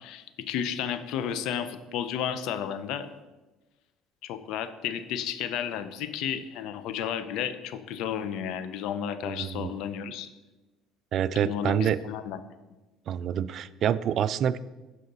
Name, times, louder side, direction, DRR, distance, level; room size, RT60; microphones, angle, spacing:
voice 1, 0.0-3.1 4.2-10.3 11.4-12.4, left 9 dB, 75° left, 11 dB, 0.6 m, -32 dB
voice 2, 9.2-9.7 11.1-12.0 13.1-14.6, right 9 dB, 55° right, 17 dB, 0.3 m, -27 dB
12.0 x 5.0 x 4.1 m, 1.1 s
supercardioid pair, 90°, 0 cm